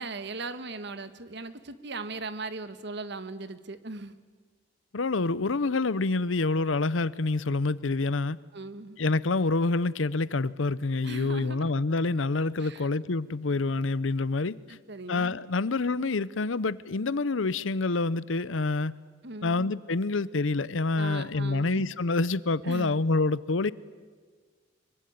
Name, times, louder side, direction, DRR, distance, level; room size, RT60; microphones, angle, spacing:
voice 1, 0.0-4.1 8.5-9.0 11.0-11.7 12.6-12.9 14.7-15.4 19.2-19.7 21.0-21.9 22.6-23.0, right 3 dB, 60° right, 12 dB, 1.6 m, -38 dB
voice 2, 4.9-8.4 9.0-14.8 15.1-19.0 19.4-23.7, left 3 dB, 90° left, 19 dB, 0.8 m, -27 dB
24.5 x 23.5 x 9.5 m, 1.5 s
head